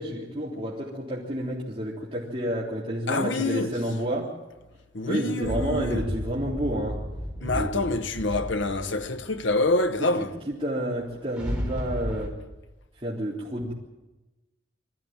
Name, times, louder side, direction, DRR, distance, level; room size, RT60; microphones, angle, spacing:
voice 1, 0.0-4.3 5.1-7.0 7.5-7.7 10.2-12.3 13.0-13.7, equal, 30° right, 3.6 m, -30 dB
voice 2, 3.1-3.8 4.9-6.0 7.4-10.3, left 2 dB, 80° left, 1.3 m, -26 dB
sound 1, 5.4-10.0 10.9-12.3, equal, 5° right, 4.2 m, -33 dB
24.5 x 15.0 x 9.0 m
head